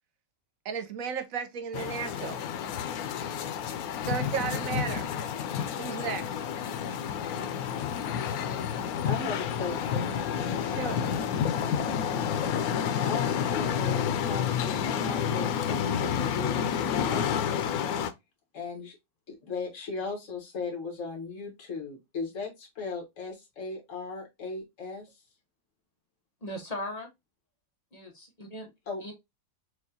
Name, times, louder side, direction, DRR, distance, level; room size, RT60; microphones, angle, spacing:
voice 1, 0.6-2.4 4.0-5.1 5.8-6.4 10.6-11.0, right 7 dB, 70° right, 1.1 m, -34 dB
sound 1, 1.7-18.1, left 8 dB, 90° left, 1.1 m, -30 dB
voice 2, 9.0-10.1 13.0-17.6 18.5-19.0 19.3-25.1 28.9-29.0, left 4 dB, 60° left, 1.7 m, -37 dB
voice 3, 26.4-27.1 27.9-28.7 29.0-29.1, left 1 dB, 35° left, 0.8 m, -38 dB
6.3 x 2.3 x 2.7 m
omnidirectional pair, 1.5 m